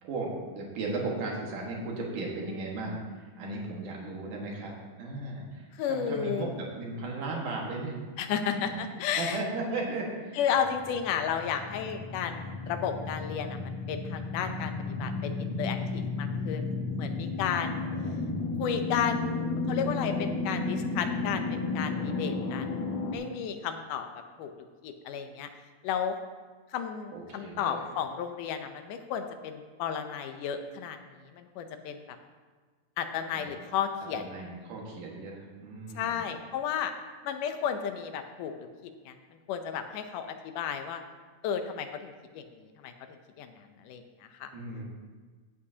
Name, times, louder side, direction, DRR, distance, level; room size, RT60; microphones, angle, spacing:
voice 1, 0.0-8.0 8.3-8.8 9.2-10.4 17.8-18.6 27.1-27.9 33.3-33.5 34.1-36.3 44.5-44.8, right 2 dB, 80° right, -2 dB, 3.3 m, -36 dB
voice 2, 5.7-6.6 8.2-9.4 10.4-14.7 15.0-16.7 17.0-17.8 18.6-22.8 23.1-24.1 24.4-24.5 24.8-25.5 25.8-26.2 26.7-31.0 31.3-32.2 33.0-34.3 36.0-36.9 37.2-38.5 38.8-39.1 39.5-41.0 41.4-42.9 43.4-44.5, left 8 dB, 90° left, 7 dB, 2.3 m, -33 dB
sound 1, 10.5-23.1, left 3 dB, 60° left, 2.0 m, -33 dB
14.5 x 8.5 x 2.8 m, 1.4 s
omnidirectional pair, 3.6 m